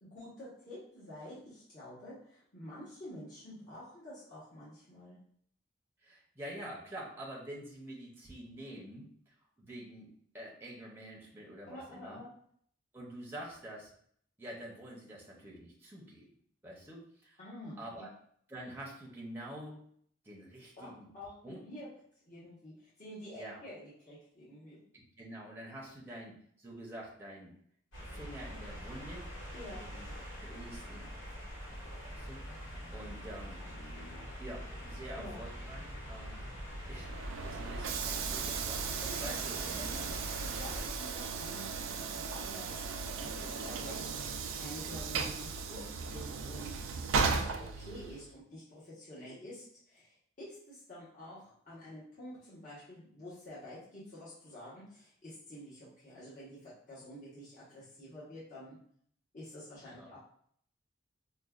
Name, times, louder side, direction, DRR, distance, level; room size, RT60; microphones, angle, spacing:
voice 1, 0.0-5.2 11.7-12.3 17.4-18.1 20.8-21.9 22.3-24.8 29.5-29.8 35.2-35.4 39.0-46.9 47.2-58.8 59.3-60.2, left 1 dB, 40° left, -10 dB, 1.1 m, -49 dB
voice 2, 6.0-10.1 10.3-12.2 12.9-13.9 14.4-16.3 16.6-17.4 17.8-18.1 18.5-19.8 20.2-21.1 21.4-21.6 23.3-23.6 24.9-27.5 28.1-30.1 30.4-32.6 32.9-33.7 34.4-36.4 36.9-37.1 37.4-39.6 59.9-60.1, right 1 dB, 10° right, -3 dB, 0.6 m, -47 dB
sound 1, 27.9-40.9, equal, 85° left, 1.5 m, -44 dB
Train / Sliding door, 36.9-48.3, right 5 dB, 85° right, 0.4 m, -36 dB
5.1 x 2.2 x 2.4 m, 0.63 s
head